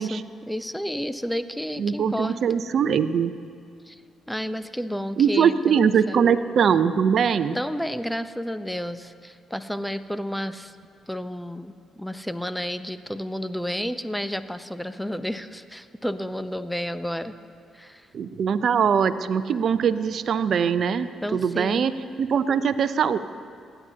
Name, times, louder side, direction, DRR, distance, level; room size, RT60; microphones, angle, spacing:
voice 1, 0.0-2.4 3.9-4.0 4.3-6.2 7.5-10.7 11.1-17.3 17.7-18.1 21.2-21.9, equal, 5° left, 12 dB, 0.7 m, -31 dB
voice 2, 1.8-3.3 5.2-7.6 18.1-21.9 22.2-23.2, right 7 dB, 60° right, 13 dB, 0.6 m, -22 dB
28.0 x 9.9 x 2.8 m, 2.2 s
hypercardioid pair, 45°, 0 cm